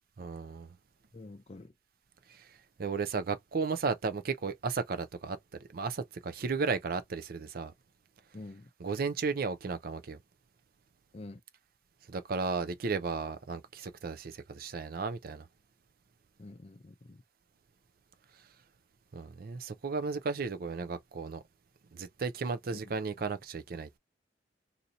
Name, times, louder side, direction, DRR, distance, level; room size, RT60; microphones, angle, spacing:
voice 1, 0.2-0.7 2.3-2.5 2.8-5.4 5.7-7.7 8.8-10.2 12.1-15.5 19.1-21.4 21.9-24.0, right 4 dB, 55° right, 0.5 m, -34 dB
voice 2, 1.1-1.7 8.3-8.7 11.1-11.4 16.4-17.2 22.7-23.0, left 2 dB, 35° left, 0.5 m, -47 dB
2.8 x 2.6 x 3.8 m
head